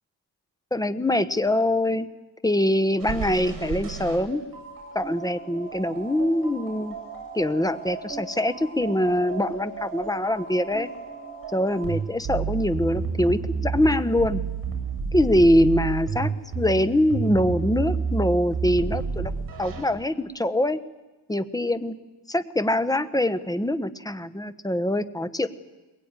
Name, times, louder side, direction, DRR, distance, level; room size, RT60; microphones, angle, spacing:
voice 1, 0.7-2.1 2.4-4.4 4.9-7.0 7.3-10.9 11.5-14.4 15.1-19.3 19.6-20.8 21.3-21.9 22.3-25.5, left 1 dB, 10° left, 12 dB, 1.2 m, -23 dB
sound 1, 3.0-19.8, right 5 dB, 55° right, 7.3 m, -31 dB
22.0 x 22.0 x 9.8 m, 1.1 s
cardioid pair, 110°, 42 cm